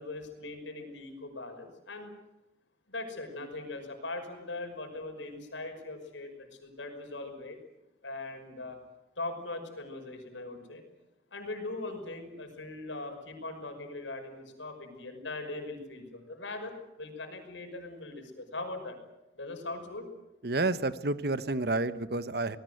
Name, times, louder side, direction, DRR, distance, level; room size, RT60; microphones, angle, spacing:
voice 1, 0.0-2.1 2.9-7.6 8.0-8.8 9.2-10.8 11.3-19.0 19.3-20.1, left 2 dB, 80° left, 5 dB, 5.8 m, -40 dB
voice 2, 20.4-22.6, right 2 dB, 55° right, 13 dB, 1.1 m, -30 dB
25.0 x 20.0 x 8.0 m, 0.95 s
head